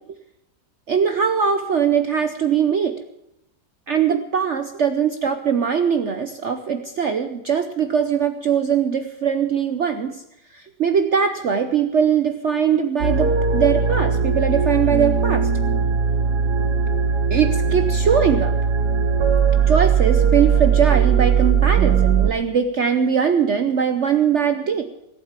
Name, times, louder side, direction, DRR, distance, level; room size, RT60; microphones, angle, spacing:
voice 1, 0.9-2.9 3.9-10.2 10.5-15.5 17.3-18.5 19.7-24.9, right 7 dB, 55° right, 8 dB, 1.0 m, -21 dB
sound 1, 13.0-22.3, right 6 dB, 75° right, 1.7 m, -19 dB
18.0 x 8.2 x 7.4 m, 0.84 s
omnidirectional pair, 1.8 m